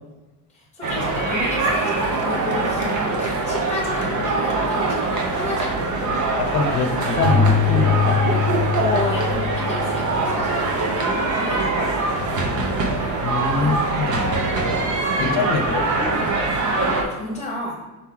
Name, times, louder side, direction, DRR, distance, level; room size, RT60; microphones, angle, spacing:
voice 1, 0.5-6.1 8.7-11.9 13.5-14.1 17.0-17.8, left 2 dB, 5° left, -5 dB, 1.0 m, -31 dB
sound 1, 0.8-17.0, right 3 dB, 50° right, 0.9 m, -23 dB
voice 2, 6.4-8.2 12.2-12.5 13.2-14.5 15.2-16.3, left 3 dB, 80° left, 4 dB, 1.0 m, -25 dB
Keyboard (musical), 7.2-10.7, left 7 dB, 45° left, 0.5 m, -23 dB
5.6 x 4.5 x 3.8 m, 1.1 s
cardioid pair, 175°, 38 cm